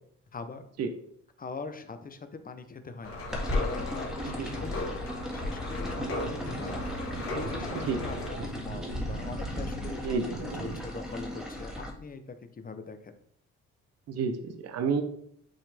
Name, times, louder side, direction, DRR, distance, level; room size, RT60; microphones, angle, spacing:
voice 1, 0.3-0.7 1.4-4.9 5.3-6.9 7.3-13.1, left 4 dB, 30° left, 8 dB, 0.7 m, -42 dB
sound 1, 3.0-8.3, left 2 dB, 45° left, 1.4 m, -36 dB
sound 2, 3.3-11.9, left 1 dB, ahead, 1.7 m, -36 dB
sound 3, 5.8-10.8, right 3 dB, 75° right, 1.1 m, -40 dB
voice 2, 14.1-15.0, right 5 dB, 55° right, 7 dB, 0.8 m, -29 dB
8.9 x 3.1 x 3.4 m, 0.69 s
cardioid pair, 90°, 30 cm